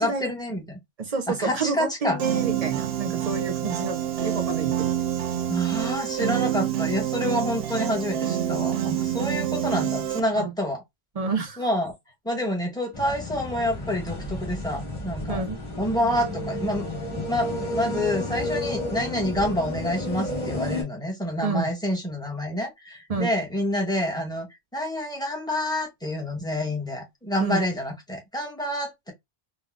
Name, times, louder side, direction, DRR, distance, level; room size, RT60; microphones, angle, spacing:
voice 1, 0.0-0.8 1.3-2.2 5.5-10.8 11.6-11.9 12.2-15.5 15.8-16.9 17.3-24.5 24.7-29.1, left 1 dB, 5° left, 0.8 m, -28 dB
voice 2, 1.0-4.9 10.3-10.5 11.1-11.6 15.3-15.6 21.4-21.7 23.1-23.3 27.4-27.6, right 4 dB, 50° right, 0.5 m, -29 dB
Piano, 2.2-10.2, right 11 dB, 75° right, 0.8 m, -27 dB
sound 1, 12.9-20.8, left 2 dB, 50° left, 1.9 m, -31 dB
3.7 x 2.2 x 2.3 m
omnidirectional pair, 1.0 m